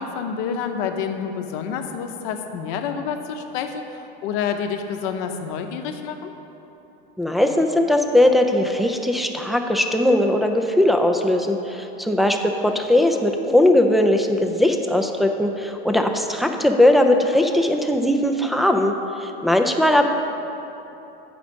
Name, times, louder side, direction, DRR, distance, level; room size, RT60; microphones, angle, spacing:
voice 1, 0.0-3.8 4.2-6.3, left 6 dB, 60° left, 5 dB, 0.8 m, -28 dB
voice 2, 7.2-20.1, left 1 dB, ahead, 3 dB, 0.3 m, -19 dB
8.3 x 5.1 x 5.1 m, 3.0 s
supercardioid pair, 115°, 30 cm